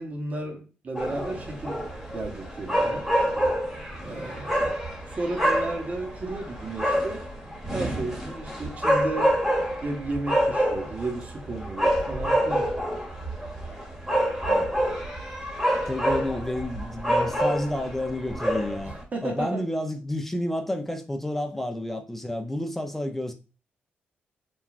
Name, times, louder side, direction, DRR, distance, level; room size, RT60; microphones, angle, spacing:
voice 1, 0.0-1.8 2.1-3.1 4.0-4.7 5.1-7.3 7.7-9.4 9.8-12.7 18.8-19.6, right 2 dB, 40° right, 0.8 m, -33 dB
sound 1, 0.9-19.0, equal, 10° right, 1.1 m, -27 dB
voice 2, 15.9-18.9 19.2-23.3, left 1 dB, 5° left, 0.5 m, -30 dB
3.1 x 2.3 x 2.4 m
cardioid pair, 85°, 4 cm